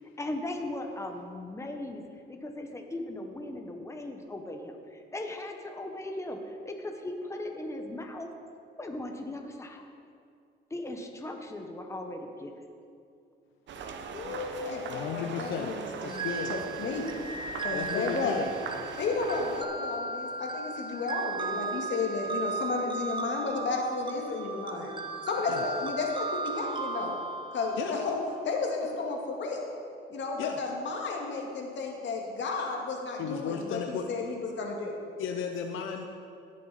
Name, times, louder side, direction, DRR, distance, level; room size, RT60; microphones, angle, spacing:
voice 1, 0.2-2.0 2.3-8.3 8.8-9.8 10.7-12.7, left 1 dB, 15° left, 3 dB, 1.1 m, -38 dB
sound 1, 13.7-19.6, right 5 dB, 65° right, 0.9 m, -41 dB
voice 2, 14.1-16.3 16.8-17.1 17.6-18.3 19.0-24.9 25.2-27.2 27.5-28.2 28.4-29.7 30.1-35.0, left 3 dB, 65° left, 0 dB, 2.0 m, -33 dB
voice 3, 14.9-15.7 16.0-16.5 17.7-18.5 21.4-22.0 22.5-22.6 25.5-25.6 27.8-28.0 30.4-30.6 33.2-34.0 35.2-36.1, left 7 dB, 85° left, 4 dB, 0.7 m, -35 dB
sound 2, 16.1-28.5, right 3 dB, 25° right, 0.9 m, -36 dB
17.5 x 6.4 x 4.2 m, 2.4 s
cardioid pair, 90°, 20 cm